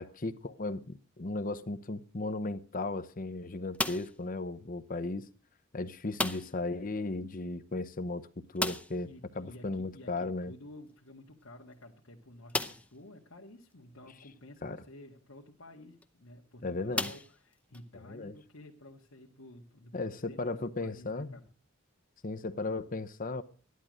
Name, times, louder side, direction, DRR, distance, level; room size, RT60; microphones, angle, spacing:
voice 1, 0.0-5.3 5.7-9.1 9.4-10.5 14.6-14.8 16.6-17.1 18.1-18.3 19.9-21.4 22.2-23.4, left 2 dB, 40° left, 0.8 m, -36 dB
sound 1, 3.7-4.3 6.1-6.7 7.0-7.1 7.4-7.5 8.5-9.1 10.9-11.0 11.6-11.7 12.5-13.0 13.7-13.8 15.8-16.0 16.9-17.8, left 2 dB, 5° left, 0.6 m, -35 dB
voice 2, 9.0-21.5, left 1 dB, 85° left, 1.8 m, -52 dB
13.5 x 11.5 x 6.4 m
head